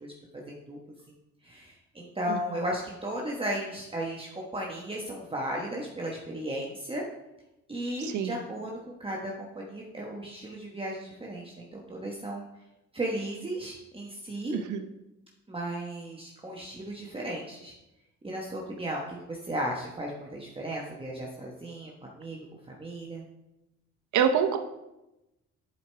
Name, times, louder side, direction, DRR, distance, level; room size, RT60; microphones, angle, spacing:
voice 1, 0.0-0.8 1.4-7.0 7.7-12.5 12.9-14.6 15.5-17.7 18.2-22.4 22.7-23.2, right 1 dB, 20° right, -2 dB, 1.1 m, -35 dB
voice 2, 8.0-8.4 14.5-14.8 24.1-24.6, right 7 dB, 75° right, 6 dB, 0.8 m, -26 dB
11.0 x 4.9 x 3.3 m, 0.95 s
cardioid pair, 90°, 30 cm